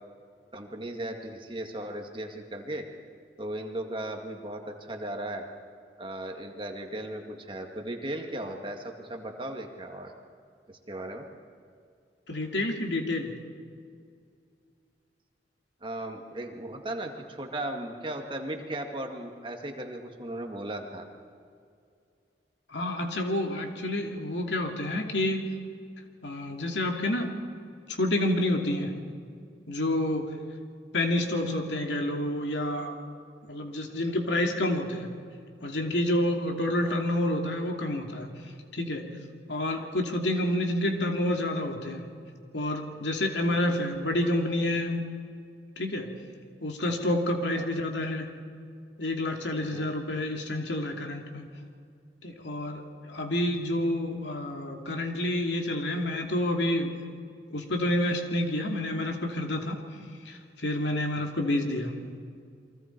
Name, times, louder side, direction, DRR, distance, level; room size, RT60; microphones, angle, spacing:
voice 1, 0.5-2.9 3.4-5.5 6.0-10.1 10.7-11.3 15.8-21.1 36.8-36.9 47.5-47.7 49.6-49.9 61.2-61.3, right 1 dB, 30° right, 3 dB, 2.1 m, -37 dB
voice 2, 12.3-13.3 22.7-25.5 26.2-27.3 27.9-28.9 29.7-30.3 30.9-33.0 33.5-35.1 35.6-38.3 38.7-39.0 39.5-42.0 42.5-45.0 45.8-46.1 46.6-48.3 49.0-51.5 52.2-57.0 57.5-59.8 60.3-61.9, left 1 dB, 85° left, 3 dB, 2.7 m, -29 dB
29.0 x 24.0 x 4.6 m, 2.3 s
head